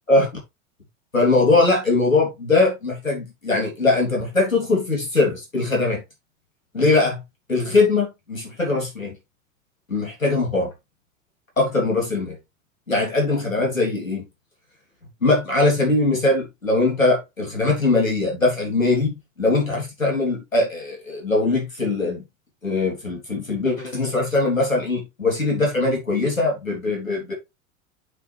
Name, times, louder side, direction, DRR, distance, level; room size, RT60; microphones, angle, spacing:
voice 1, 1.1-6.0 6.7-7.2 7.5-9.2 9.9-10.7 11.6-12.4 12.9-14.3 15.2-22.3 22.6-27.3, left 3 dB, 85° left, 3.6 m, -21 dB
8.5 x 5.3 x 3.5 m
figure-of-eight pair, 85°, 39 cm